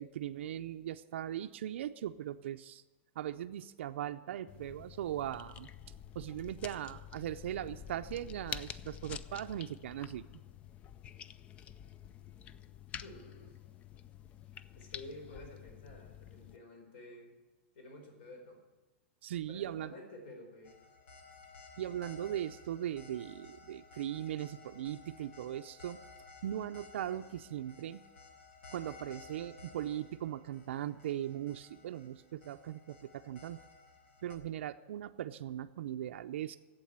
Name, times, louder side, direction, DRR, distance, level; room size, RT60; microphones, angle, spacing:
voice 1, 0.0-2.8 3.2-5.7 6.2-10.3 19.2-19.9 21.8-26.0 26.4-28.0 28.7-33.6 34.2-36.6, right 11 dB, 75° right, 7 dB, 0.5 m, -39 dB
sound 1, 4.5-16.6, left 9 dB, 20° left, 0.3 m, -48 dB
voice 2, 13.0-13.6 14.7-17.3 17.7-18.6 19.5-20.8 22.0-22.3, left 1 dB, 60° left, 3 dB, 4.4 m, -51 dB
sound 2, 20.6-34.3, left 4 dB, 90° left, 3.9 m, -56 dB
11.5 x 8.2 x 8.7 m, 1.2 s
supercardioid pair, 160°, 7 cm